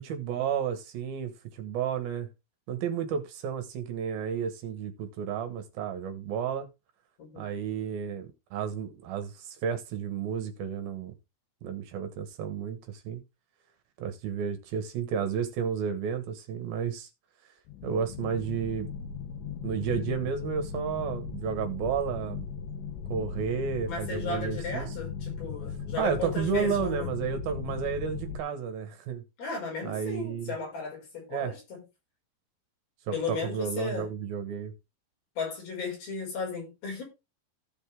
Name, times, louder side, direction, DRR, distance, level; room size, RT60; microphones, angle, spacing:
voice 1, 0.0-2.3 2.7-6.7 7.4-8.3 8.5-11.1 11.6-13.2 14.0-17.1 17.8-18.9 19.6-22.5 23.1-24.9 26.0-29.2 29.8-30.5 31.3-31.5 33.1-34.7, right 7 dB, 70° right, 3.0 m, -32 dB
voice 2, 7.2-7.6 23.9-27.1 29.4-31.8 33.1-34.1 35.4-37.0, left 4 dB, 65° left, 7.3 m, -35 dB
sound 1, 17.7-28.4, left 6 dB, 80° left, 1.9 m, -37 dB
15.5 x 5.3 x 3.5 m
omnidirectional pair, 4.6 m